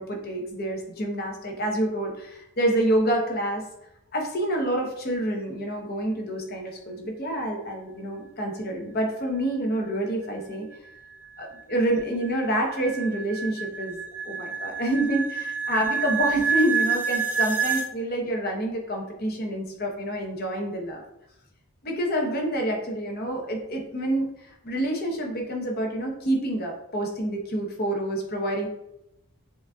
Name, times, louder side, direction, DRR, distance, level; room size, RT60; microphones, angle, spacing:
voice 1, 0.0-3.6 4.1-10.7 11.4-14.0 14.2-21.0 21.8-28.7, right 1 dB, 45° left, 1 dB, 0.8 m, -27 dB
sound 1, 10.7-17.9, right 5 dB, 10° right, 0.4 m, -28 dB
6.8 x 2.6 x 2.3 m, 0.83 s
head